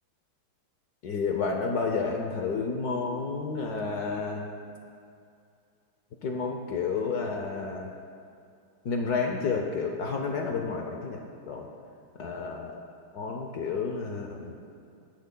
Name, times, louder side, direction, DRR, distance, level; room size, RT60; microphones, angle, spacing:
voice 1, 1.0-4.5 6.2-7.9 8.8-11.7 12.2-12.7 13.1-14.6, left 4 dB, 60° left, 2 dB, 1.0 m, -30 dB
21.5 x 10.0 x 2.2 m, 2.4 s
omnidirectional pair, 2.3 m